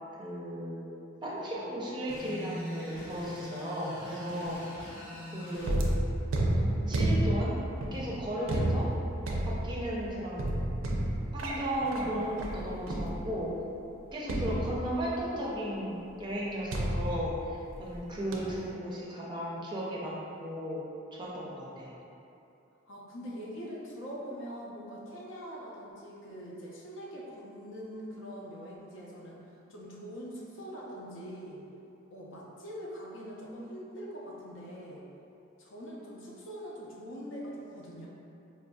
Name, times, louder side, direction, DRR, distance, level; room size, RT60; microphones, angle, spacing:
voice 1, 0.2-0.8 1.2-4.6 5.3-5.8 6.6-7.5 7.9-8.9 9.5-10.5 11.3-13.5 14.1-20.8 21.2-21.9, equal, 20° right, -5 dB, 0.4 m, -35 dB
sound 1, 2.1-5.7, left 1 dB, 90° left, 1.1 m, -42 dB
sound 2, 5.6-13.6 14.3-15.3 16.7-18.0 18.3-18.7, right 1 dB, 85° right, 0.4 m, -31 dB
voice 2, 22.9-29.4 29.7-31.6 32.1-35.0 35.6-38.1, equal, 75° left, -4 dB, 0.6 m, -43 dB
4.6 x 2.5 x 2.2 m, 2.8 s
head